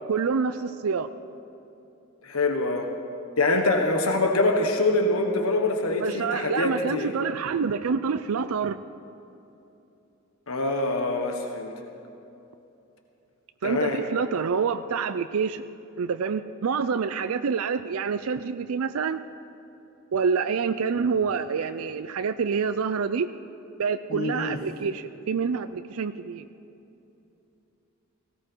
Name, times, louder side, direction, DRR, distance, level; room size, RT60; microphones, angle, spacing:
voice 1, 0.1-1.1 6.0-8.8 13.6-15.6 16.0-19.2 20.1-23.3 23.8-26.5, right 5 dB, 90° right, 11 dB, 0.5 m, -27 dB
voice 2, 2.2-2.9 3.4-7.1 10.5-11.7 13.6-14.0 24.1-24.6, left 2 dB, 90° left, 3 dB, 1.3 m, -24 dB
18.5 x 16.5 x 4.6 m, 2.9 s
head